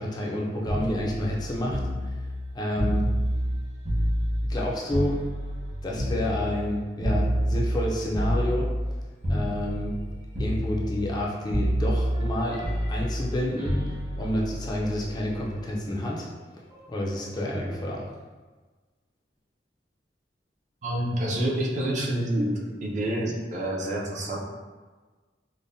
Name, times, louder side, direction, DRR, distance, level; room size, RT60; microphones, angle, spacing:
voice 1, 0.0-2.2 2.5-3.1 4.4-5.3 5.8-8.7 9.3-10.0 10.4-16.3 16.9-18.1, left 1 dB, 20° left, -3 dB, 0.4 m, -29 dB
sound 1, 0.7-4.6 4.9-8.9 9.2-10.1 10.3-11.2 11.5-15.5 16.7-16.9, equal, 55° right, 1.4 m, -28 dB
voice 2, 20.8-22.5 22.8-24.4, right 1 dB, 40° right, -2 dB, 0.5 m, -27 dB
5.0 x 2.1 x 2.6 m, 1.4 s
head